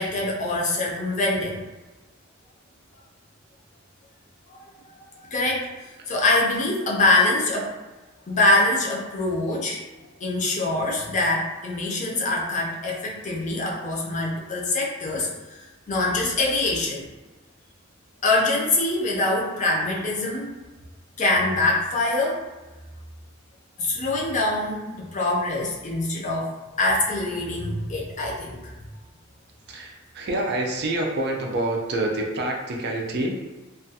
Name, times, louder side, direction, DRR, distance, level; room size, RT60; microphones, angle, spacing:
voice 1, 0.0-1.6 4.5-4.6 5.2-7.7 8.3-9.8 10.2-17.1 18.2-20.5 21.2-22.4 23.8-28.7, left 2 dB, 35° left, -3 dB, 0.5 m, -24 dB
voice 2, 29.7-33.4, right 1 dB, 55° right, 0 dB, 0.4 m, -27 dB
2.3 x 2.2 x 2.7 m, 1.2 s
head